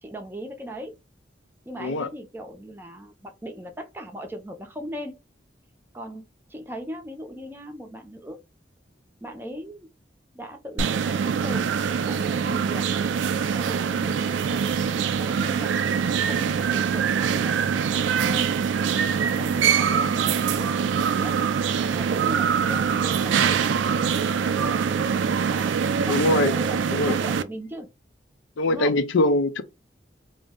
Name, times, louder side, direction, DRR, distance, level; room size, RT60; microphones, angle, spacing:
voice 1, 0.0-1.0 1.7-5.2 5.9-6.2 6.5-8.4 9.2-9.9 10.3-11.7 12.0-12.9 13.5-15.7 16.2-18.5 19.4-20.7 21.0-21.4 21.9-27.9 28.7-28.9, equal, 10° right, 0.5 m, -38 dB
voice 2, 1.8-2.1 26.1-26.5 26.9-27.2 28.6-29.6, left 2 dB, 85° left, 0.5 m, -22 dB
sound 1, 10.8-27.4, right 7 dB, 80° right, 0.3 m, -24 dB
2.5 x 2.0 x 3.5 m
head